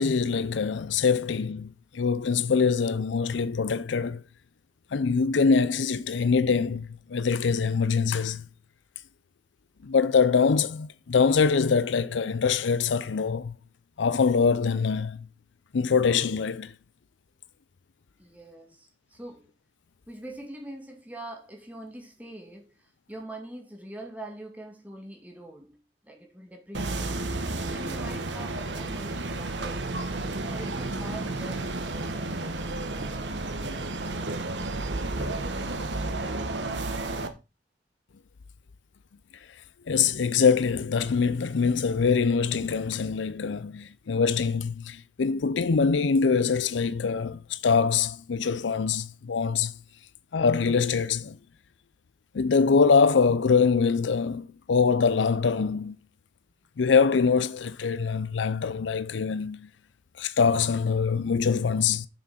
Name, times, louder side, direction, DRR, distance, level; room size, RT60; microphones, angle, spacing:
voice 1, 0.0-4.2 4.9-8.5 9.8-13.5 14.0-15.3 15.7-16.7 39.9-49.7 50.3-51.4 52.3-55.9 56.8-59.7 60.2-62.1, left 5 dB, 85° left, 0.5 m, -24 dB
voice 2, 18.2-19.5 20.1-22.7 23.1-25.7 26.0-29.9 30.5-32.5, right 1 dB, 10° right, 2.1 m, -43 dB
sound 1, 26.7-37.3, right 2 dB, 75° right, 1.4 m, -32 dB
7.9 x 6.1 x 5.7 m
head